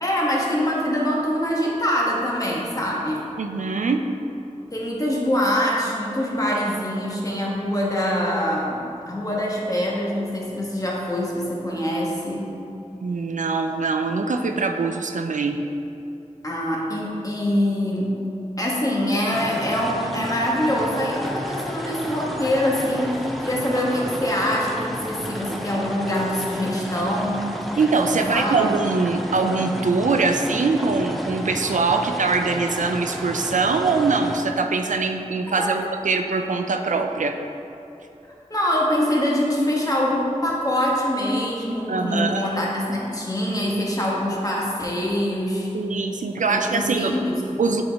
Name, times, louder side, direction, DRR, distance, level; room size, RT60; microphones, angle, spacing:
voice 1, 0.0-3.2 4.7-12.5 16.4-18.1 18.6-27.5 28.1-28.7 35.5-35.8 38.5-45.7 46.5-47.6, equal, 25° left, -3 dB, 1.2 m, -24 dB
voice 2, 3.4-4.0 13.0-15.6 27.8-37.4 41.9-42.5 45.7-47.2 47.6-47.8, right 4 dB, 75° right, 5 dB, 0.4 m, -23 dB
sound 1, 19.3-34.4, equal, ahead, 0.6 m, -32 dB
7.7 x 4.2 x 3.4 m, 2.9 s
wide cardioid pair, 45°, 13 cm